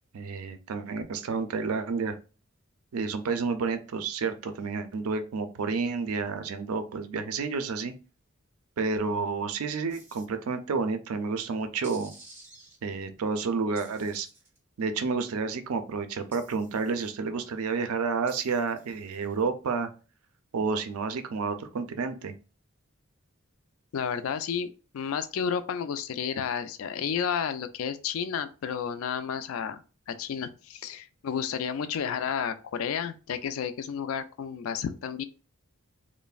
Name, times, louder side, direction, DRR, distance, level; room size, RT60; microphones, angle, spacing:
voice 1, 0.1-2.1 2.9-7.9 8.8-12.1 12.8-14.3 14.8-19.9 20.5-22.3, right 4 dB, 80° right, 0.4 m, -30 dB
sound 1, 9.9-10.2 11.8-12.8 13.7-14.6 16.3-17.1 18.3-19.4, right 2 dB, 10° right, 0.6 m, -52 dB
voice 2, 23.9-29.8 30.1-35.2, left 7 dB, 70° left, 0.3 m, -31 dB
3.2 x 2.1 x 2.3 m
head